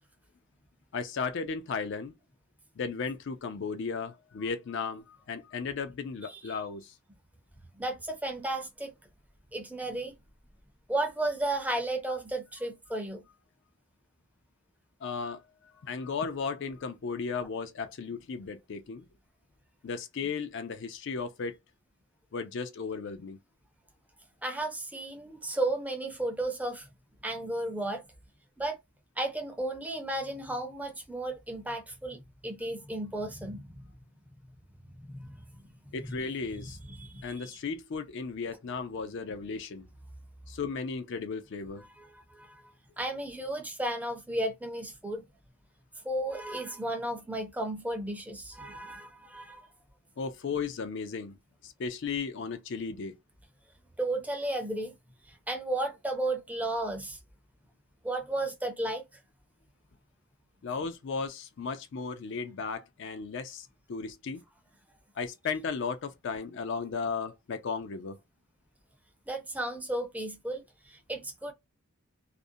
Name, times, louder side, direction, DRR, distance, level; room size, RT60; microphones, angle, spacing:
voice 1, 0.9-2.1 2.8-6.9 15.0-15.4 15.8-19.0 19.8-21.6 22.3-23.4 35.9-36.8 37.2-39.9 40.5-41.8 50.2-51.4 51.6-53.2 60.6-64.4 65.2-68.2, left 5 dB, 55° left, 0.4 m, -35 dB
voice 2, 6.2-6.5 7.7-8.9 9.5-10.1 10.9-13.2 24.4-26.9 27.2-28.0 28.6-28.8 29.2-33.9 34.8-35.6 36.1-36.2 36.6-37.5 42.0-45.2 46.0-49.7 54.0-54.9 55.3-57.2 58.0-59.0 69.3-71.5, right 1 dB, 5° right, 0.5 m, -34 dB
2.5 x 2.0 x 2.6 m
head